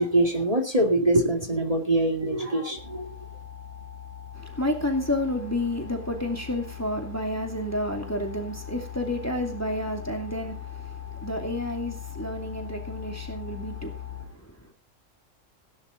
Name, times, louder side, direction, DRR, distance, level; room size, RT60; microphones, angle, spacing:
voice 1, 0.0-3.1, right 1 dB, 30° right, 2.4 m, -23 dB
sound 1, 2.8-14.3, left 9 dB, 55° left, 3.5 m, -40 dB
voice 2, 4.3-14.7, left 1 dB, 10° left, 2.5 m, -30 dB
17.5 x 10.5 x 3.9 m
omnidirectional pair, 1.3 m